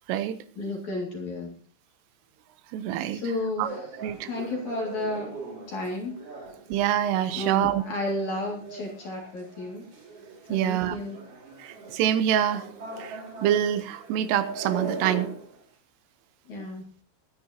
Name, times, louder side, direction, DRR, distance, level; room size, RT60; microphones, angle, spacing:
voice 1, 0.6-1.6 3.1-3.8 4.3-5.4 5.7-6.2 7.3-9.8 10.5-11.2 11.6-11.7 16.5-16.8, left 2 dB, 45° left, 0 dB, 2.9 m, -32 dB
voice 2, 2.7-3.2 3.6-3.7 4.0-4.3 6.7-7.8 10.5-11.0 11.6-12.7 13.0-15.3, right 11 dB, 85° right, 12 dB, 3.5 m, -26 dB
sound 1, 3.6-15.6, right 3 dB, 45° right, 4.3 m, -40 dB
22.5 x 9.6 x 2.8 m, 0.43 s
omnidirectional pair, 5.7 m